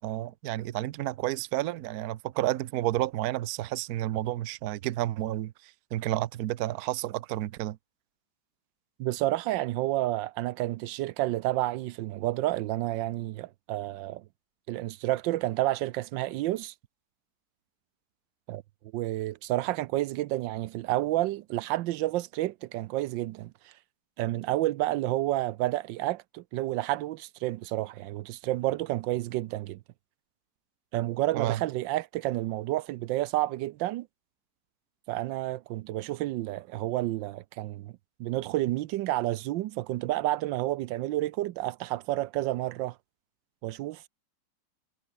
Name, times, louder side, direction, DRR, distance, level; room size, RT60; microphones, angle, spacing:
voice 1, 0.0-7.8 31.3-31.6, right 15 dB, 65° right, 1.0 m, -31 dB
voice 2, 9.0-14.2 14.7-16.7 18.5-18.6 18.9-23.7 24.2-29.8 30.9-34.1 35.1-37.9 38.2-43.0 43.6-44.1, right 15 dB, 85° right, 1.3 m, -30 dB
omnidirectional pair, 2.0 m